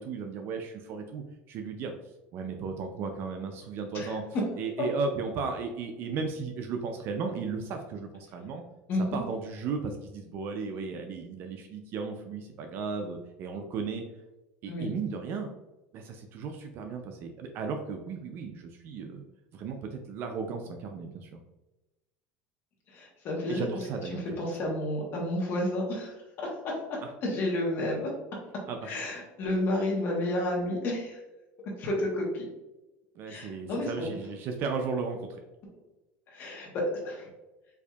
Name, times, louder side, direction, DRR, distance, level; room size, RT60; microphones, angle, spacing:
voice 1, 0.0-1.9 2.3-4.2 4.6-8.6 9.1-14.0 14.6-15.5 15.9-19.3 19.5-21.4 23.5-24.3 24.6-24.7 27.0-27.1 28.7-28.9 33.1-35.4, right 5 dB, 50° right, 4 dB, 0.4 m, -35 dB
voice 2, 8.9-9.2 14.7-14.9 22.9-23.7 24.1-26.7 27.2-28.1 28.8-31.2 31.8-32.5 33.2-34.1 36.3-37.3, left 1 dB, 50° left, -3 dB, 1.1 m, -31 dB
4.6 x 2.5 x 2.3 m, 1.0 s
supercardioid pair, 125°, 5 cm